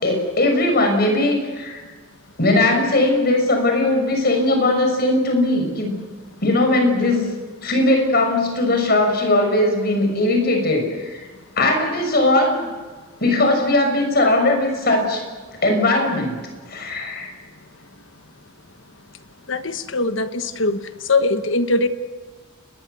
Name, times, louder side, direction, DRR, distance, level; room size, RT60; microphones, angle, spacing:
voice 1, 0.0-1.8 2.4-5.9 6.4-7.2 7.6-11.2 11.6-12.7 13.2-15.2 15.6-16.4 16.7-17.3, left 2 dB, 50° left, 4 dB, 6.5 m, -19 dB
voice 2, 19.5-20.8 21.1-21.9, left 2 dB, 65° left, 9 dB, 1.4 m, -21 dB
30.0 x 21.0 x 6.9 m, 1.4 s
head